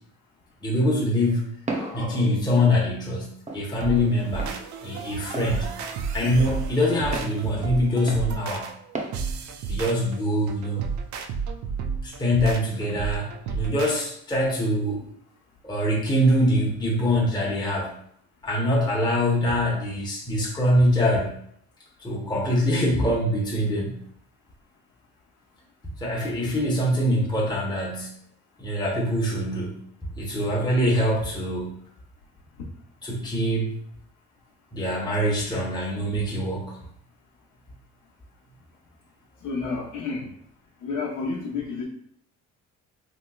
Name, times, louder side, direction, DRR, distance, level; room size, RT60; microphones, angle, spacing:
voice 1, 0.6-1.5 1.7-4.5 4.8-5.7 6.1-8.7 9.6-10.9 12.0-15.1 15.6-17.9 18.4-21.4 22.0-24.0 26.0-28.1 28.6-29.8 30.1-31.8 33.0-33.8 34.7-36.8, equal, 15° left, -4 dB, 0.7 m, -24 dB
Walk footsteps, 1.7-2.0 2.6-2.7 3.5-3.6 4.4-4.6 5.3-5.5 6.2-6.4 7.1-7.3 8.1-8.3 8.9-9.1, right 3 dB, 25° right, 0.6 m, -32 dB
sound 1, 3.8-14.1, right 5 dB, 70° right, 0.4 m, -32 dB
voice 2, 39.4-40.3 40.8-41.9, left 4 dB, 80° left, -1 dB, 0.9 m, -30 dB
3.2 x 3.0 x 2.2 m, 0.67 s
cardioid pair, 90°, 30 cm